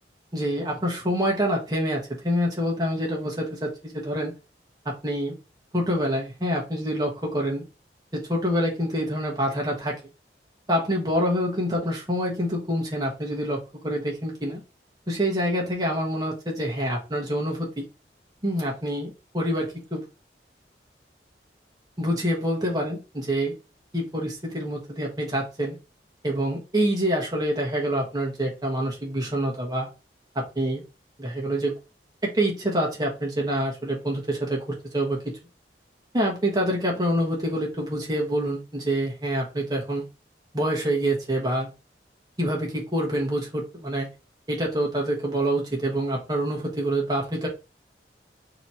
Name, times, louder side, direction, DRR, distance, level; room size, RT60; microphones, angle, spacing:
voice 1, 0.3-4.3 4.8-5.3 5.7-7.6 8.1-10.0 10.7-14.6 15.1-17.9 18.4-20.0 22.0-23.5 23.9-25.8 26.2-29.9 30.3-30.8 31.2-31.7 32.2-35.4 36.1-40.0 40.5-41.7 42.4-44.1 44.5-47.5, equal, 20° right, -2 dB, 1.2 m, -26 dB
4.1 x 2.9 x 4.3 m, 0.30 s
head